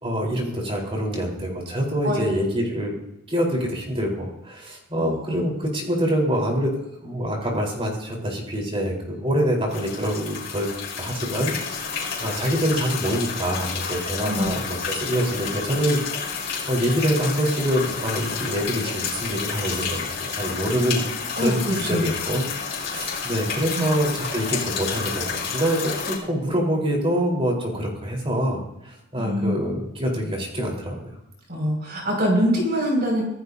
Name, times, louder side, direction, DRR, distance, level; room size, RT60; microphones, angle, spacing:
voice 1, 0.0-2.9 3.3-10.7 10.9-21.1 21.3-25.8 26.1-31.2, equal, 25° right, -1 dB, 4.2 m, -25 dB
voice 2, 5.0-5.4 14.2-14.5 21.4-22.1 23.7-23.9 29.2-29.6 31.5-33.2, equal, 50° right, -1 dB, 6.0 m, -24 dB
sound 1, 9.7-26.2, left 5 dB, 55° left, 4.9 m, -30 dB
25.5 x 15.0 x 2.8 m, 0.88 s
head